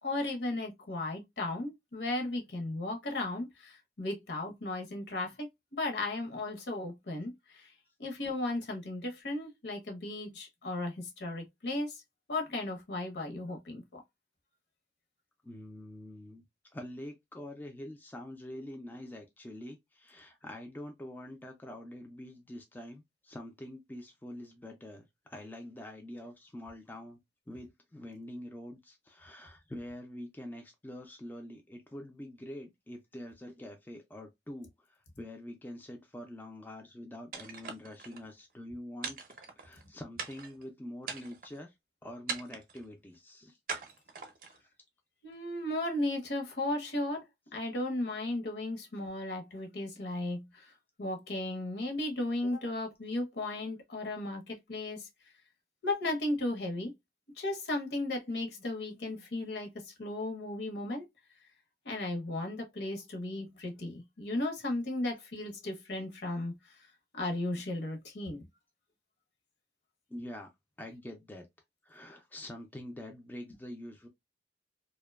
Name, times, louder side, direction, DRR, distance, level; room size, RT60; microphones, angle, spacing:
voice 1, 0.0-7.7 8.0-12.0 12.3-14.0 45.2-47.2 47.5-50.7 51.0-55.1 55.8-56.9 57.4-61.1 61.8-66.8 67.1-68.5, left 2 dB, 70° left, 0.8 m, -35 dB
voice 2, 15.4-16.5 16.7-27.2 27.5-39.2 39.6-41.7 42.0-43.6 44.6-44.7 70.1-70.5 70.8-71.5 71.8-74.1, left 1 dB, 10° left, 0.3 m, -45 dB
Ceramic Break, 37.3-38.2 39.0-39.8 40.2-40.6 41.0-41.6 42.3-42.8 43.7-44.6, right 5 dB, 50° right, 0.5 m, -41 dB
2.5 x 2.2 x 2.2 m
head